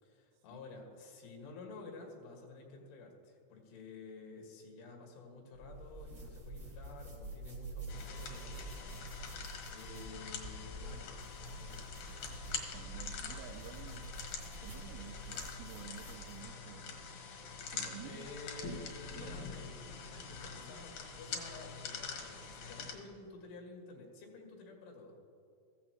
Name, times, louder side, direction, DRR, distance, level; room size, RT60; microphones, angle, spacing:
voice 1, 0.0-11.2 11.6-12.0 18.0-19.7 20.3-25.2, left 3 dB, 90° left, 1 dB, 4.2 m, -51 dB
sound 1, 5.5-16.5, right 2 dB, 65° right, 0.8 m, -48 dB
sound 2, 7.9-22.9, left 5 dB, 75° left, 1.8 m, -45 dB
voice 2, 12.7-14.1 14.6-17.2 17.7-18.3 19.1-19.7, right 9 dB, 85° right, 3 dB, 2.5 m, -51 dB
15.0 x 14.5 x 2.9 m, 2.5 s
omnidirectional pair, 5.3 m